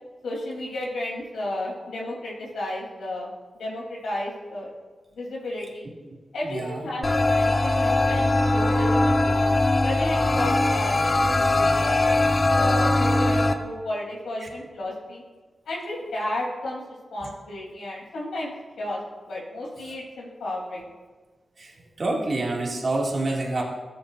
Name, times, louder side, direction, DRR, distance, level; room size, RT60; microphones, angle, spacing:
voice 1, 0.2-3.3 3.5-4.7 5.1-5.9 6.3-12.0 12.5-15.2 15.7-16.8 17.1-18.5 18.8-19.0 19.3-20.9, left 1 dB, 85° left, -4 dB, 3.0 m, -32 dB
voice 2, 6.4-6.9 14.4-14.5 21.6-21.7 22.0-23.6, right 2 dB, 55° right, -2 dB, 2.0 m, -27 dB
sound 1, 7.0-13.5, left 2 dB, 45° left, 0.8 m, -21 dB
14.5 x 6.9 x 2.5 m, 1.3 s
supercardioid pair, 40°, 0 cm